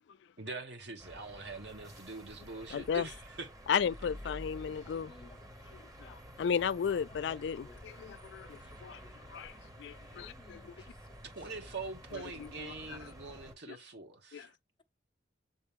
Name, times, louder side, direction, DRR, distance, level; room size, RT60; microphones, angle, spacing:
voice 1, 0.4-3.5 10.8-10.9 11.3-14.5, right 3 dB, 65° right, 1.9 m, -43 dB
sound 1, 1.0-13.5, equal, 20° right, 1.1 m, -51 dB
voice 2, 2.7-3.1 3.7-5.1 6.0-9.0 9.3-9.5 9.8-10.6 12.1-13.0 13.7-13.8 14.3-14.5, left 7 dB, 70° left, 0.3 m, -35 dB
voice 3, 4.6-5.7 6.0-6.5 6.9-7.4 7.6-7.8 8.5-9.7 10.1-10.9, left 2 dB, 25° left, 0.6 m, -59 dB
7.4 x 3.8 x 3.5 m
head